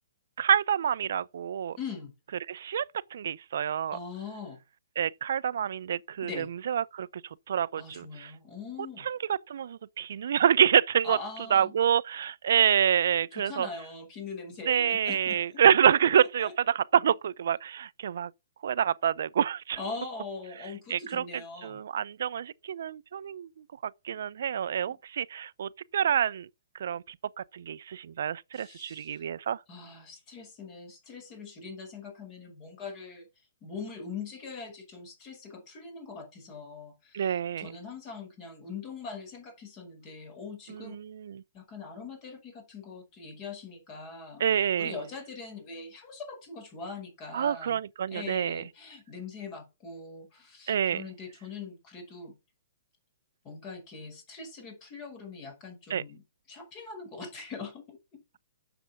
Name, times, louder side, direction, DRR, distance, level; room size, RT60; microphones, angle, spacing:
voice 1, 0.4-1.8 2.5-2.8 3.1-4.0 5.0-7.1 7.5-8.3 9.1-11.2 11.5-13.7 14.7-18.3 18.6-19.8 20.9-21.2 21.6-23.5 24.0-26.5 26.8-27.0 27.5-29.6 37.1-37.7 40.7-41.4 44.4-44.9 47.3-48.6 50.7-51.0 55.9-56.0, right 8 dB, 65° right, 0.6 m, -27 dB
voice 2, 1.8-2.1 3.9-4.6 6.2-6.5 7.8-9.1 11.0-11.7 13.3-15.6 16.2-16.5 19.8-21.8 24.9-25.0 28.5-29.2 29.7-33.3 33.6-41.0 41.5-44.4 44.8-47.8 48.1-52.4 53.4-58.2, left 4 dB, 30° left, 5.4 m, -42 dB
10.0 x 7.0 x 5.8 m
hypercardioid pair, 145°, 0 cm